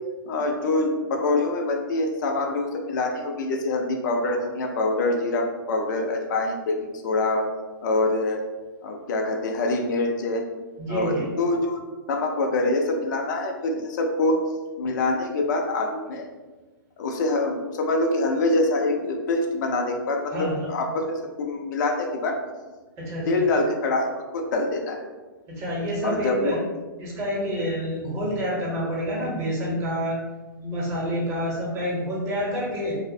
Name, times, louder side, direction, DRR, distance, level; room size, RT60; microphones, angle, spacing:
voice 1, 0.3-6.8 7.0-7.4 7.8-8.4 8.8-10.5 10.9-11.8 12.1-14.4 14.8-16.3 17.0-22.4 23.3-25.0 26.0-26.6, left 2 dB, 60° left, 2 dB, 0.4 m, -25 dB
voice 2, 10.8-11.3 20.3-20.7 23.0-23.5 25.5-26.6 27.0-30.2 30.6-33.0, equal, 25° right, -5 dB, 0.8 m, -28 dB
2.4 x 2.0 x 2.5 m, 1.2 s
hypercardioid pair, 140°, 12 cm